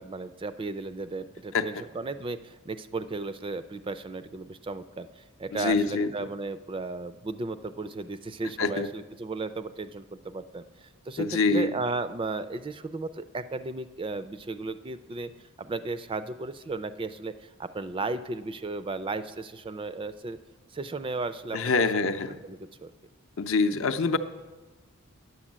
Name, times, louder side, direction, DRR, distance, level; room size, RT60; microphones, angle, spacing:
voice 1, 0.0-15.3 15.6-20.4 20.7-21.6 22.3-22.9, right 3 dB, 25° right, 12 dB, 0.3 m, -35 dB
voice 2, 5.5-6.1 8.6-8.9 11.2-11.7 21.5-22.4 23.4-24.2, left 4 dB, 60° left, 9 dB, 0.6 m, -25 dB
9.9 x 7.8 x 7.4 m, 1.3 s
head